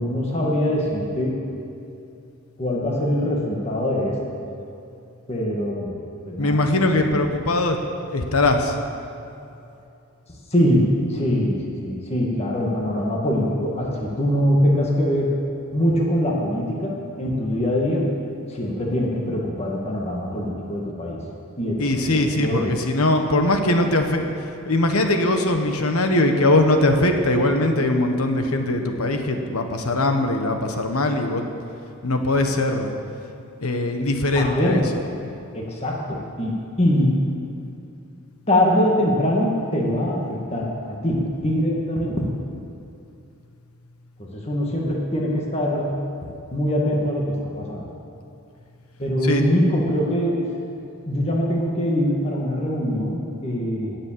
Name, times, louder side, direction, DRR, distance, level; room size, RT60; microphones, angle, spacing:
voice 1, 0.0-1.3 2.6-4.2 5.3-6.0 6.3-6.6 6.9-7.1 10.5-15.3 15.7-18.1 18.5-21.2 21.6-22.8 34.3-34.9 35.5-37.2 38.5-42.3 44.2-46.0 46.5-47.9 49.0-50.5 51.1-54.0, equal, 30° left, -2 dB, 1.9 m, -23 dB
voice 2, 6.4-7.8 8.1-8.8 21.8-24.3 24.7-31.5 32.0-32.9 33.6-35.1 49.2-49.4, left 2 dB, 85° left, 5 dB, 1.3 m, -21 dB
17.5 x 7.5 x 7.5 m, 2.7 s
head